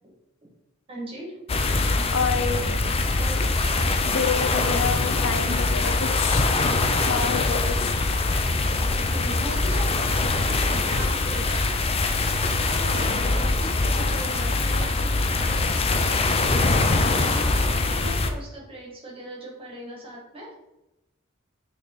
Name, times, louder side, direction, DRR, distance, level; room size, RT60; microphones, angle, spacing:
voice 1, 0.9-1.4 3.2-3.4 8.3-8.5 9.1-11.7 12.2-20.5, right 1 dB, 25° right, -3 dB, 1.9 m, -39 dB
sound 1, 1.5-18.3, left 3 dB, 30° left, 0.5 m, -23 dB
voice 2, 2.1-2.7 4.0-6.5 7.1-8.0, left 6 dB, 75° left, 8 dB, 0.7 m, -28 dB
6.4 x 3.8 x 4.0 m, 0.92 s
head